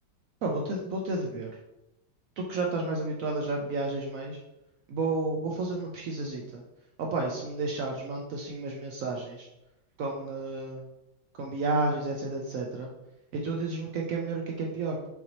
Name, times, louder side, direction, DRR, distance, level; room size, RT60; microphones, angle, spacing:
voice 1, 0.4-1.5 2.4-4.4 4.9-6.6 7.0-9.5 10.0-10.9 11.4-12.9 13.3-15.1, right 3 dB, 80° right, 0 dB, 0.7 m, -31 dB
5.8 x 2.7 x 2.9 m, 0.92 s
omnidirectional pair, 2.0 m